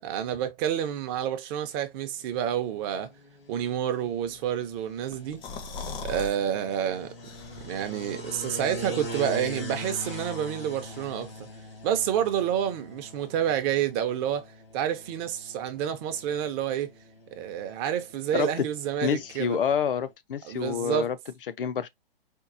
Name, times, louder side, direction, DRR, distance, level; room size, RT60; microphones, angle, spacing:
voice 1, 0.0-3.1 3.5-5.4 6.0-7.1 7.6-11.3 11.8-14.5 14.7-16.9 17.3-19.6 20.4-21.1, right 9 dB, 25° right, 0.6 m, -29 dB
sound 1, 2.1-20.1, equal, 80° left, 1.5 m, -43 dB
sound 2, 5.1-6.4 6.7-6.8 7.2-7.9, left 4 dB, 15° left, 0.6 m, -38 dB
voice 2, 18.3-18.7 19.0-21.2 21.5-21.9, left 8 dB, 65° left, 0.6 m, -28 dB
4.4 x 2.3 x 2.5 m
figure-of-eight pair, 120°, 29 cm